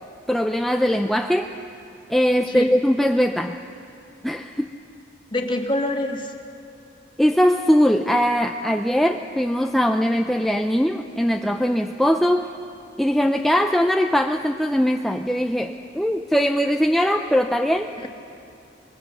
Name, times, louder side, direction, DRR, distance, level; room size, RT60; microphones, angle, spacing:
voice 1, 0.3-1.5 2.1-3.6 4.2-4.7 7.2-12.5 13.0-17.9, equal, ahead, 4 dB, 0.5 m, -21 dB
voice 2, 5.3-6.3 18.0-18.1, left 1 dB, 25° left, 3 dB, 1.7 m, -25 dB
24.5 x 20.5 x 6.8 m, 2.6 s
head